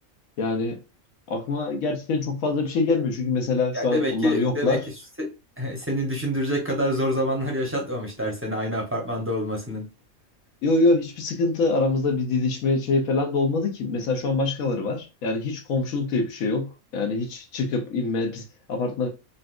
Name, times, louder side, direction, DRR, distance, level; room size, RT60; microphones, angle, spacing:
voice 1, 0.4-0.8 1.3-4.8 10.6-19.1, left 3 dB, 80° left, 1.2 m, -24 dB
voice 2, 3.7-4.8 5.2-5.3 5.6-9.9, equal, 15° right, 0.6 m, -26 dB
3.9 x 2.3 x 2.4 m
omnidirectional pair, 1.4 m